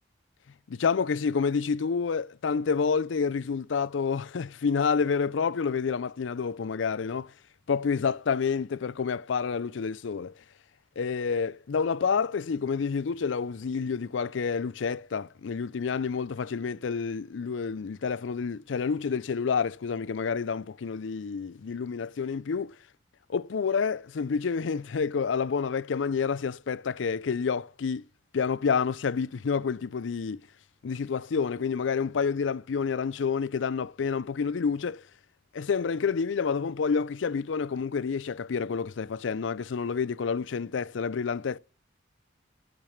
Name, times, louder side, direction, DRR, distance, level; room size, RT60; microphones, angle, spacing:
voice 1, 0.7-7.3 7.7-10.3 11.0-22.7 23.3-28.0 28.3-30.4 30.8-35.0 35.5-41.6, left 5 dB, 85° left, 0.5 m, -29 dB
12.0 x 6.7 x 5.9 m
head